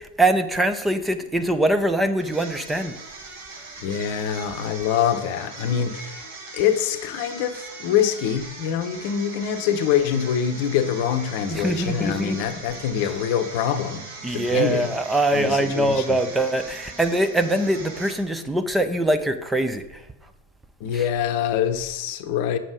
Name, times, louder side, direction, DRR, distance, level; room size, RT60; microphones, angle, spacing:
voice 1, 0.0-2.9 11.5-12.4 14.2-19.8 20.9-21.0, right 1 dB, 5° right, 0.5 m, -23 dB
sound 1, 2.2-18.5, right 3 dB, 55° right, 1.8 m, -40 dB
voice 2, 3.8-6.3 6.5-14.0 14.3-14.9 15.3-16.1 20.8-22.6, left 9 dB, 50° left, 0.8 m, -24 dB
7.2 x 5.7 x 4.9 m
figure-of-eight pair, 95°, 0 cm